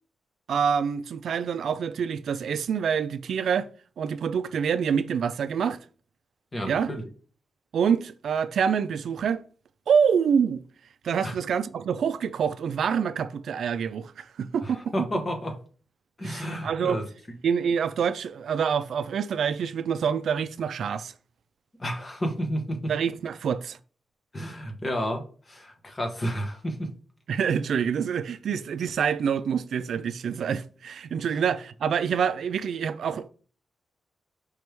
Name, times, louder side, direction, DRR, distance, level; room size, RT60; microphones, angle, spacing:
voice 1, 0.5-3.7 4.0-5.8 6.6-6.9 7.7-9.4 9.9-10.6 11.0-14.9 16.2-17.0 17.4-21.1 22.9-23.8 27.3-33.3, right 7 dB, 75° right, 0.3 m, -26 dB
voice 2, 6.5-7.1 11.2-11.3 14.6-15.6 16.2-17.1 21.8-22.9 24.3-26.9 31.3-31.4, equal, 25° left, 1.0 m, -31 dB
5.0 x 3.1 x 3.3 m
wide cardioid pair, 125°, 0 cm